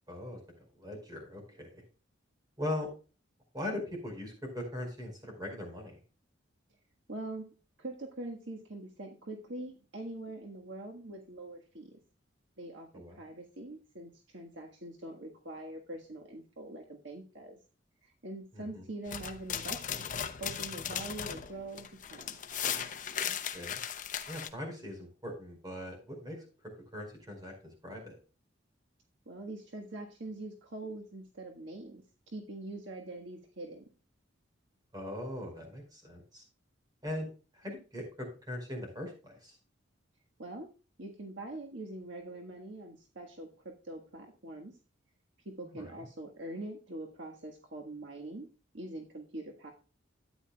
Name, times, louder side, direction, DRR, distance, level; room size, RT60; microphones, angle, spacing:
voice 1, 0.1-0.4 0.8-1.8 2.6-2.9 3.5-5.9 12.9-13.2 18.5-18.9 23.3-23.8 24.3-26.4 26.9-27.5 27.8-28.1 34.9-36.4 37.0-37.3 37.6-39.5 45.6-45.9, left 1 dB, 20° right, 2 dB, 4.8 m, -40 dB
voice 2, 7.1-7.4 7.8-12.0 12.6-17.6 18.2-20.0 20.4-22.4 29.3-33.8 40.4-40.7 41.0-44.7 45.4-48.5 48.7-49.7, right 2 dB, 70° right, 2 dB, 1.6 m, -43 dB
sound 1, 19.1-24.5, left 8 dB, 40° left, 0.8 m, -37 dB
12.5 x 9.6 x 2.3 m, 0.34 s
head